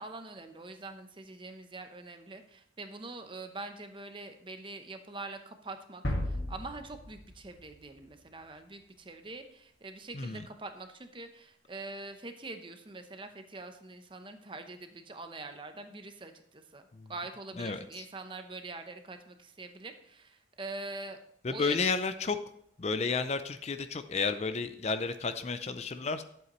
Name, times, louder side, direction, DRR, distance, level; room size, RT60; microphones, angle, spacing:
voice 1, 0.0-21.2 21.5-21.8, right 3 dB, 25° right, 7 dB, 0.8 m, -44 dB
sound 1, 6.0-7.9, left 1 dB, 80° left, 1.7 m, -35 dB
voice 2, 10.1-10.5 16.9-17.1 17.6-18.0 21.4-22.4 22.8-26.2, left 4 dB, 35° left, 10 dB, 0.4 m, -32 dB
11.0 x 7.9 x 3.1 m, 0.70 s
head